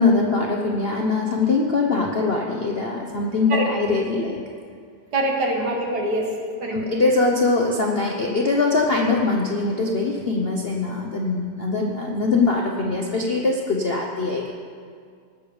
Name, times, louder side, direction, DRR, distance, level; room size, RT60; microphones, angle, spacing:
voice 1, 0.0-4.4 6.7-14.5, left 3 dB, 90° left, 0 dB, 0.5 m, -22 dB
voice 2, 5.1-6.8, right 1 dB, 50° right, 0 dB, 2.1 m, -24 dB
19.5 x 7.1 x 5.0 m, 2.2 s
omnidirectional pair, 2.4 m